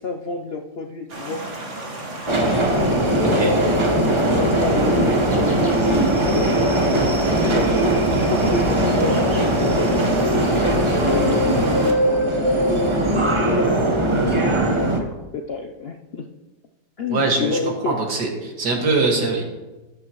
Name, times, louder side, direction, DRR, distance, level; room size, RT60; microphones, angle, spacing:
voice 1, 0.0-1.4 2.8-3.7 4.1-7.8 8.1-9.9 11.0-16.3 17.0-18.0, left 4 dB, 65° left, 4 dB, 0.6 m, -30 dB
sound 1, 1.1-11.9, right 2 dB, 45° right, 1.7 m, -33 dB
Subway metro underground, 2.3-15.0, right 1 dB, 20° right, 0.9 m, -19 dB
sound 2, 5.3-6.0 6.3-6.4 6.8-7.1 7.4-7.5 7.8-10.6 11.3-11.4 11.6-11.8, equal, 30° left, 3.9 m, -45 dB
voice 2, 17.1-17.6 17.9-19.4, right 3 dB, 85° right, 0 dB, 2.5 m, -22 dB
13.5 x 10.0 x 3.0 m, 1.1 s
omnidirectional pair, 1.8 m